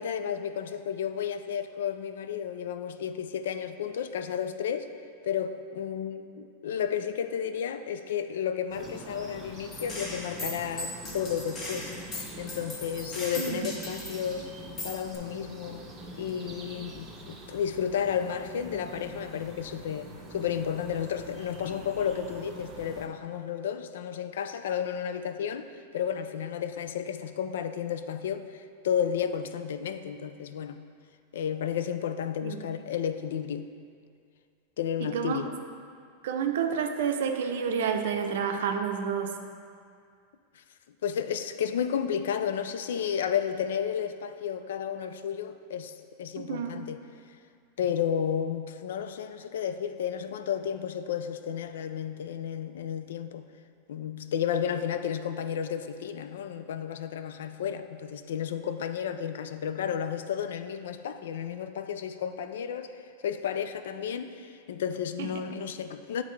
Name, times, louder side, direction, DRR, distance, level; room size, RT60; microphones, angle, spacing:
voice 1, 0.0-4.9 5.2-11.9 12.4-14.5 14.8-15.8 16.1-25.7 25.9-30.8 31.3-33.7 34.8-35.6 41.0-47.0 47.8-53.5 53.9-62.9 63.2-66.2, left 8 dB, 80° left, 9 dB, 0.3 m, -32 dB
sound 1, 8.7-23.1, right 1 dB, 20° right, 0.9 m, -44 dB
Gunshot gunfire, 9.7-14.3 14.8-15.2, left 1 dB, 30° left, 1.2 m, -38 dB
voice 2, 13.4-13.7 32.4-32.6 35.0-35.4 36.2-39.3 46.4-46.8 65.2-65.3, right 7 dB, 80° right, 5 dB, 0.5 m, -29 dB
9.1 x 3.6 x 3.2 m, 2.2 s
supercardioid pair, 130°, 0 cm